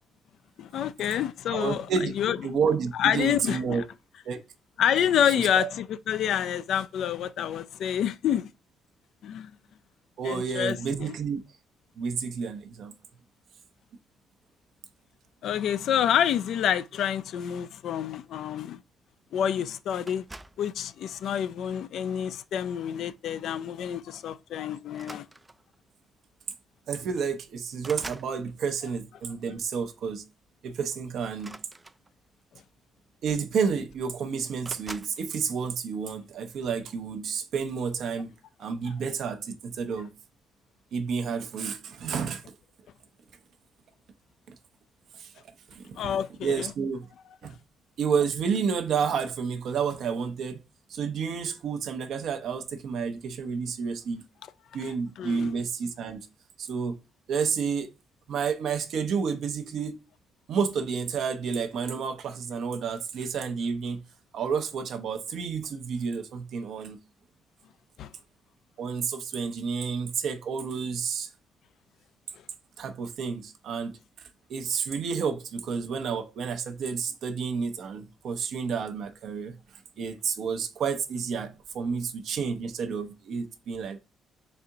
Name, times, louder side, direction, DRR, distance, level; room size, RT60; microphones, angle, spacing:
voice 1, 0.6-1.9 2.2-2.4 2.9-3.8 4.8-8.5 9.2-9.5 10.2-11.2 15.4-18.8 19.3-20.2 20.6-25.3 46.0-46.7 54.8-55.5 68.0-68.1, left 9 dB, 75° left, 0.3 m, -28 dB
voice 2, 1.5-2.1 2.4-3.8 4.2-4.4 5.4-5.7 10.2-11.4 12.0-12.9 26.9-30.2 30.6-31.6 33.2-38.3 38.6-40.1 40.9-42.4 44.5-44.6 45.1-45.3 45.7-47.1 47.4-47.6 48.0-50.6 50.9-54.2 54.7-56.3 56.6-57.0 57.3-57.9 58.3-60.0 60.5-64.0 64.3-67.0 68.8-71.3 72.8-84.0, right 6 dB, 70° right, 0.7 m, -30 dB
sound 1, 20.1-20.7 21.6-21.9 23.4-23.5 23.8-24.0 24.9-25.8 26.8-26.9 27.2-28.4 31.3-32.4 33.3-33.4 33.6-34.2 34.6-35.2, right 2 dB, 20° right, 0.3 m, -45 dB
4.2 x 2.8 x 3.4 m
cardioid pair, 90°, 0 cm